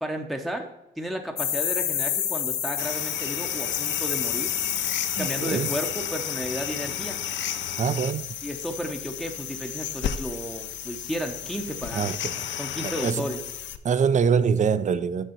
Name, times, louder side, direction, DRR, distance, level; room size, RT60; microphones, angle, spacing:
voice 1, 0.0-0.7 1.0-4.5 5.2-7.2 8.4-12.1 12.6-13.4, equal, ahead, 0.7 m, -33 dB
sound 1, 1.4-8.2, left 9 dB, 85° left, 1.0 m, -30 dB
sound 2, 2.8-13.8, left 10 dB, 65° left, 0.5 m, -33 dB
voice 2, 5.2-5.7 7.8-8.3 11.9-12.4 12.8-13.3 13.8-15.3, right 6 dB, 40° right, 0.5 m, -24 dB
6.6 x 6.4 x 4.4 m
cardioid pair, 90°, 20 cm